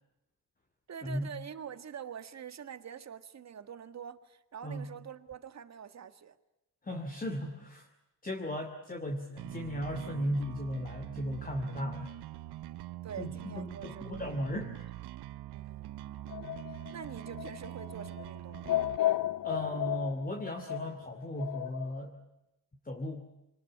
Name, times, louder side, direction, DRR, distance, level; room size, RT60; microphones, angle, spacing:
voice 1, 0.9-6.4 13.0-14.3 15.5-15.9 16.7-18.8, right 8 dB, 40° right, 11 dB, 1.7 m, -45 dB
voice 2, 6.8-7.9 8.2-12.1 13.2-14.9 19.4-22.2 22.8-23.3, equal, 20° left, 4 dB, 2.5 m, -36 dB
sound 1, 9.4-19.0, right 14 dB, 70° right, 0.8 m, -44 dB
sound 2, 16.3-21.9, left 13 dB, 55° left, 0.8 m, -34 dB
26.0 x 19.5 x 9.9 m, 0.92 s
cardioid pair, 110°, 41 cm